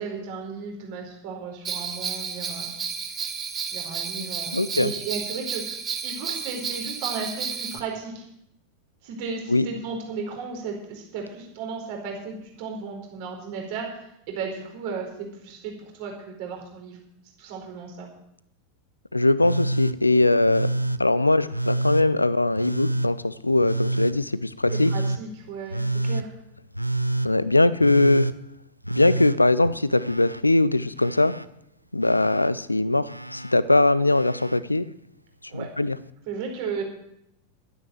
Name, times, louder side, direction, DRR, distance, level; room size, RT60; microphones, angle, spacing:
voice 1, 0.0-2.7 3.1-3.2 3.7-8.2 9.0-17.0 17.4-18.1 24.7-26.3 35.5-35.7 36.3-36.8, right 5 dB, 45° right, 1 dB, 4.9 m, -35 dB
Bell, 1.6-7.8, right 6 dB, 25° right, 1.9 m, -32 dB
voice 2, 4.5-4.9 9.5-9.7 19.1-20.7 21.0-24.9 27.2-28.3 28.9-31.3 31.9-34.9 35.5-36.0, left 2 dB, 85° left, 18 dB, 0.6 m, -21 dB
Telephone, 19.4-20.0 20.5-21.0 21.5-22.1 22.6-23.1 23.6-24.2 24.7-25.2 25.7-26.3 26.7-27.3 27.8-28.4 28.8-30.4 30.7-31.5 32.0-32.5 33.1-33.6 34.1-34.6 35.8-35.9, right 2 dB, 90° right, 0.5 m, -28 dB
12.0 x 9.6 x 7.7 m, 0.78 s
figure-of-eight pair, 90°, 0 cm